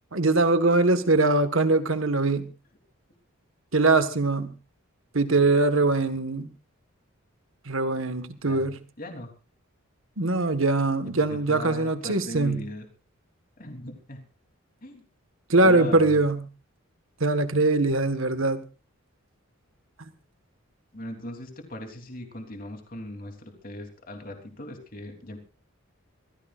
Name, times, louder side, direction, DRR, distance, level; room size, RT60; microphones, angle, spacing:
voice 1, 0.1-2.5 3.7-4.5 5.1-6.5 7.7-8.8 10.2-12.6 15.5-16.4 17.2-18.6, right 2 dB, 65° right, 1.6 m, -22 dB
voice 2, 9.0-9.3 11.2-12.9 13.6-14.2 14.8-15.0 15.6-16.2 20.9-25.4, left 1 dB, 40° left, 3.4 m, -38 dB
25.0 x 16.0 x 2.5 m
head